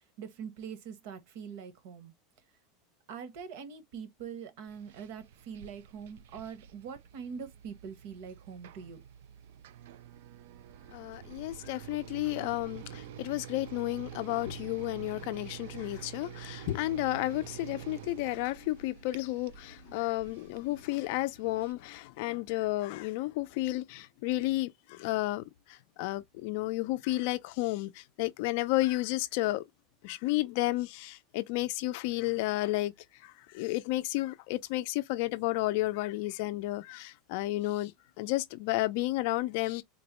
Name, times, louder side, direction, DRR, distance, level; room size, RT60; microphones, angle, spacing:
voice 1, 0.0-2.1 3.1-9.0, right 7 dB, 65° right, 0.9 m, -43 dB
sound 1, 4.7-21.7, right 10 dB, 80° right, 0.3 m, -48 dB
voice 2, 10.9-29.6 30.0-32.9 33.2-37.9 38.2-39.8, left 18 dB, 65° left, 0.4 m, -32 dB
3.9 x 2.1 x 2.8 m
supercardioid pair, 150°, 0 cm